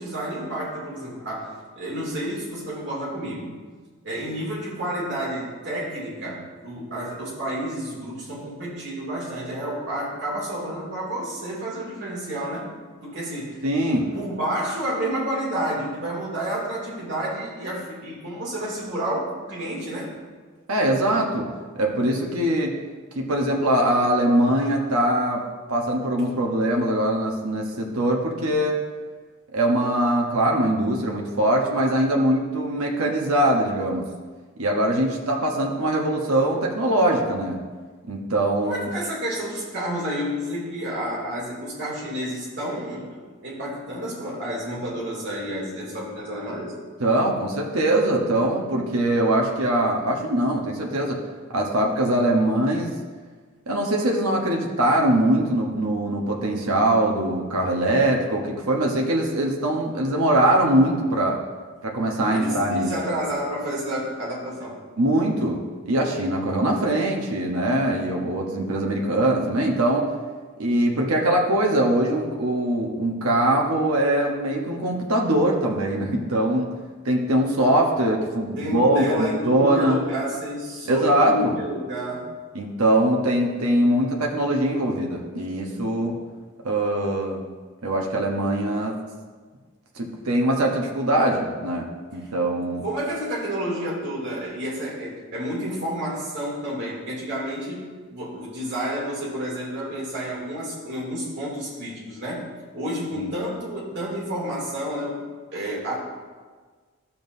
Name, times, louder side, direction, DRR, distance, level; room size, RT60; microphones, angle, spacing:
voice 1, 0.0-3.6 4.0-12.7 13.0-13.6 14.1-20.1 38.6-43.1 43.4-46.8 62.3-64.8 78.5-82.3 92.7-97.8 98.1-102.5 102.7-106.0, equal, 55° right, -5 dB, 2.7 m, -30 dB
voice 2, 13.6-14.1 20.7-21.5 21.7-22.7 23.1-25.4 25.7-28.8 29.5-34.1 34.6-37.6 38.1-38.9 47.0-51.2 51.5-52.9 53.7-61.4 61.8-62.9 65.0-65.6 65.8-70.0 70.6-76.7 77.0-80.0 80.8-81.6 82.5-86.2 86.6-87.4 87.8-89.0 90.0-92.8 103.1-103.3, right 1 dB, 85° right, 0 dB, 1.1 m, -22 dB
12.5 x 7.2 x 2.7 m, 1.5 s
head